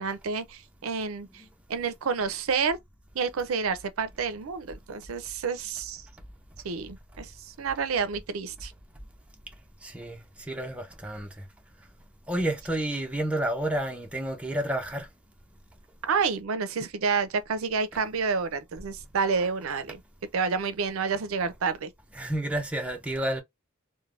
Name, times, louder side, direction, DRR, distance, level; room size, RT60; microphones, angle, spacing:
voice 1, 0.0-1.4 1.7-2.8 3.1-6.0 6.6-8.7 16.0-20.0 20.3-21.9, right 5 dB, 70° right, 0.5 m, -29 dB
voice 2, 9.8-11.4 12.3-15.1 22.2-23.4, right 1 dB, 5° right, 0.6 m, -30 dB
3.2 x 2.1 x 2.4 m
head